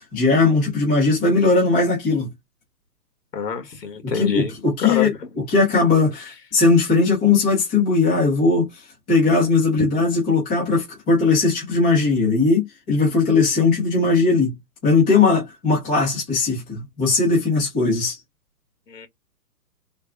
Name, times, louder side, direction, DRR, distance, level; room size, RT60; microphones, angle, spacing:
voice 1, 0.1-2.3 4.0-5.1 5.5-8.7 9.1-14.5 14.8-18.2, left 3 dB, 5° left, 0.5 m, -19 dB
voice 2, 3.3-4.5 4.8-5.1 9.8-9.9 18.9-19.1, left 6 dB, 90° left, 1.6 m, -26 dB
3.4 x 2.3 x 3.4 m
hypercardioid pair, 150°, 48 cm